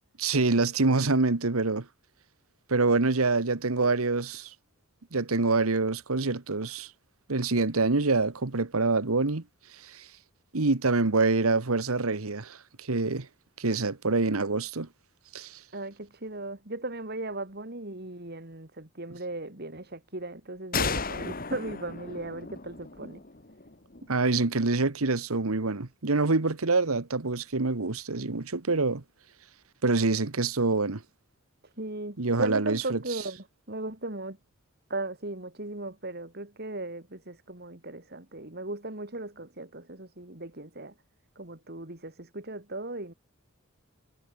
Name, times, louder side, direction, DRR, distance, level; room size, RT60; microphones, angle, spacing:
voice 1, 0.2-1.9 2.7-4.5 5.1-6.9 7.3-9.4 9.7-10.1 10.5-13.3 13.6-14.9 15.3-15.6 24.1-29.0 29.8-31.0 32.2-33.0, right 3 dB, 85° right, 1.4 m, -26 dB
voice 2, 15.7-23.2 31.8-33.4 33.7-34.4 34.9-40.9 41.3-43.1, right 2 dB, 50° right, 3.1 m, -37 dB
sound 1, 20.7-24.3, left 4 dB, 40° left, 1.9 m, -34 dB
head